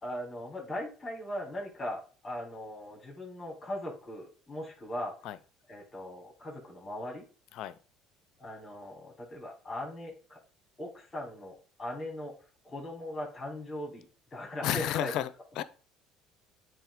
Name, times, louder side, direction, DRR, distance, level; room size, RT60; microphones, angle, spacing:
voice 1, 0.0-5.2 5.7-7.2 8.4-10.4 10.8-12.3 12.6-14.0 14.3-15.2, left 1 dB, 25° left, 4.0 m, -39 dB
voice 2, 14.6-15.3 15.6-15.7, left 12 dB, 65° left, 0.6 m, -31 dB
8.9 x 3.3 x 5.1 m
hypercardioid pair, 75°, 0 cm